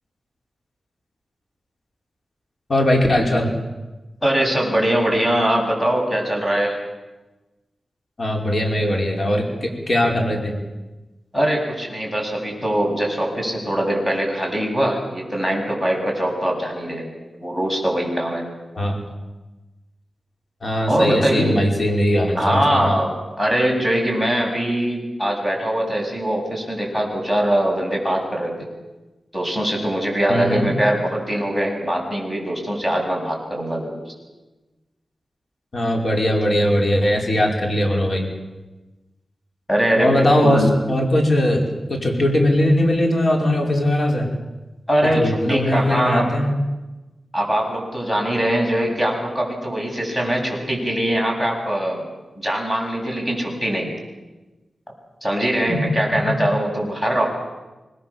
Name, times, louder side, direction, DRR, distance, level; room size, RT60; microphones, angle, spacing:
voice 1, 2.7-3.5 8.2-10.6 18.7-19.0 20.6-22.9 30.3-30.7 35.7-38.3 40.0-41.6 41.9-44.3 45.0-46.5 55.7-55.8, left 1 dB, 50° left, 2 dB, 5.0 m, -20 dB
voice 2, 4.2-6.8 11.3-17.1 17.4-18.5 20.9-21.6 22.3-28.5 29.3-34.0 39.7-40.7 44.9-46.3 47.3-52.0 52.4-53.9 55.2-57.3, right 1 dB, 15° left, 1 dB, 7.6 m, -22 dB
26.5 x 20.0 x 7.3 m, 1.1 s
wide cardioid pair, 85°, 0 cm